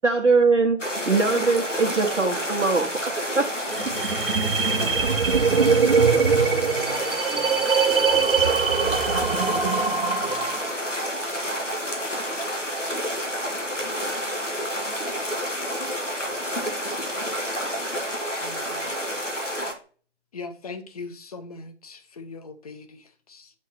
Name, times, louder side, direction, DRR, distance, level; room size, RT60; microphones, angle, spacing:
voice 1, 0.0-3.6 3.8-3.9, right 4 dB, 85° right, 1.1 m, -22 dB
sound 1, 0.8-19.7, equal, 90° left, 1.8 m, -29 dB
sound 2, 3.7-10.7, right 5 dB, 50° right, 0.7 m, -22 dB
voice 2, 6.3-8.6, right 3 dB, 5° right, 0.6 m, -41 dB
voice 3, 18.4-19.0 20.3-23.5, left 4 dB, 30° left, 0.7 m, -40 dB
6.4 x 3.6 x 4.2 m
figure-of-eight pair, 140°, 36 cm